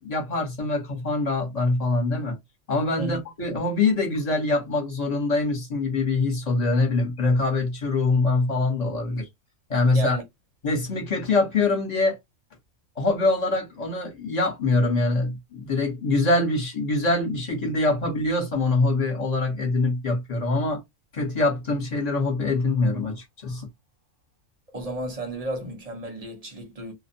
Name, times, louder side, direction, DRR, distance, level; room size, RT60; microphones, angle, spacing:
voice 1, 0.0-2.4 2.7-9.3 9.7-10.2 10.6-12.2 13.0-20.8 21.1-23.7, left 3 dB, 35° left, 1.0 m, -24 dB
voice 2, 9.9-10.2 24.7-26.9, right 1 dB, 35° right, 0.7 m, -32 dB
2.3 x 2.1 x 2.7 m
omnidirectional pair, 1.3 m